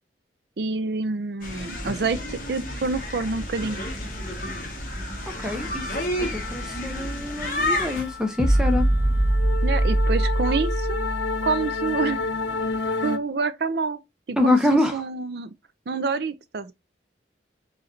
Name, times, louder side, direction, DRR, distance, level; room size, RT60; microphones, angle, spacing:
voice 1, 0.6-3.8 9.6-11.1 11.4-12.3 13.0-14.0 14.3-15.5 15.9-16.7, right 4 dB, 60° right, 0.5 m, -27 dB
sound 1, 1.4-8.0, left 1 dB, 45° left, 1.5 m, -30 dB
sound 2, 4.4-4.6 4.9-13.2, left 4 dB, 80° left, 0.5 m, -32 dB
voice 2, 5.4-8.8 14.4-15.0, left 2 dB, 5° right, 0.7 m, -25 dB
sound 3, 8.4-11.8, right 1 dB, 20° left, 1.4 m, -22 dB
4.8 x 3.2 x 2.6 m
head